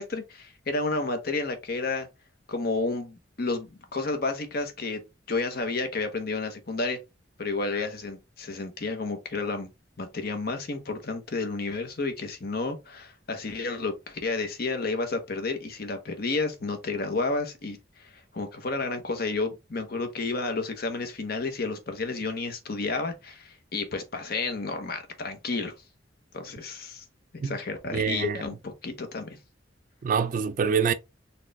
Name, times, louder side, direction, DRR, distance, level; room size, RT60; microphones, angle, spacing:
voice 1, 0.0-2.1 2.5-5.0 5.3-7.0 7.4-9.7 10.0-25.7 26.3-27.0 27.3-29.4, left 3 dB, 55° left, 0.9 m, -31 dB
voice 2, 27.9-28.4 30.0-30.9, right 6 dB, 45° right, 0.3 m, -25 dB
4.2 x 2.4 x 3.3 m
head